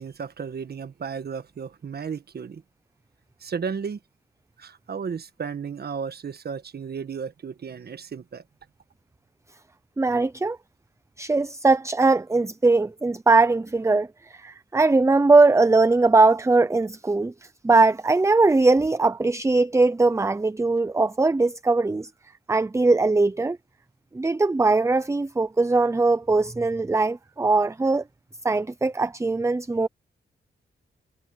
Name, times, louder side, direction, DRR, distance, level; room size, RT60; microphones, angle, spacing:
voice 1, 0.0-2.6 3.4-4.0 4.6-8.4, right 6 dB, 55° right, 1.5 m, -34 dB
voice 2, 10.0-10.6 11.2-14.1 14.3-17.3 17.6-22.1 22.5-23.6 24.1-28.0 28.4-29.9, right 3 dB, 15° right, 0.7 m, -20 dB
cardioid pair, 85°, 20 cm